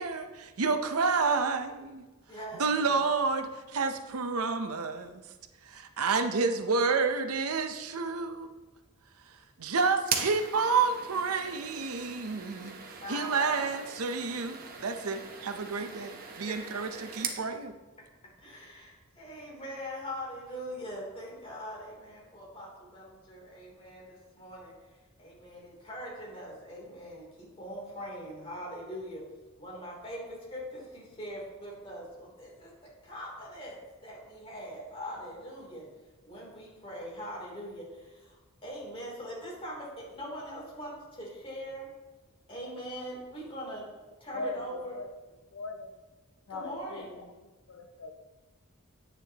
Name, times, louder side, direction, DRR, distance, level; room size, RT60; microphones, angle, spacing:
voice 1, 0.0-2.0 2.6-5.2 5.7-8.5 9.6-17.7, right 4 dB, 85° right, 7 dB, 0.7 m, -30 dB
voice 2, 2.3-3.0 13.0-13.7 15.7-17.3 18.0-18.1 18.4-24.7 25.2-29.3 29.6-35.9 36.2-41.9 42.5-43.9 44.2-45.0 46.5-47.2, equal, 25° left, -4 dB, 3.2 m, -42 dB
sound 1, 10.0-17.4, right 6 dB, 40° right, 1.0 m, -40 dB
voice 3, 45.5-46.0 46.5-47.2 47.7-48.1, left 3 dB, 75° left, 6 dB, 0.7 m, -39 dB
10.0 x 9.2 x 2.9 m, 1.2 s
head